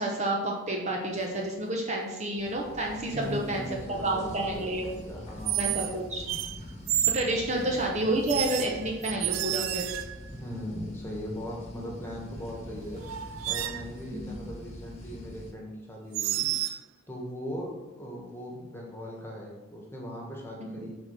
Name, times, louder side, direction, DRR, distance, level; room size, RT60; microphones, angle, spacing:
voice 1, 0.0-4.9 5.6-6.2 7.1-9.9 14.1-14.3 20.6-20.9, right 1 dB, 35° right, 0 dB, 1.0 m, -30 dB
sound 1, 1.1-1.5 3.2-3.6 5.5-6.0 6.3-7.3 8.3-10.3 12.5-12.6 13.0-13.9 16.1-16.8, right 13 dB, 75° right, 0.4 m, -30 dB
sound 2, 2.4-15.5, left 1 dB, 30° left, 1.3 m, -44 dB
voice 2, 3.1-5.8 7.4-7.7 10.3-13.0 13.5-16.5 17.1-20.9, equal, 10° left, -1 dB, 1.6 m, -39 dB
7.4 x 4.4 x 6.1 m, 1.2 s
head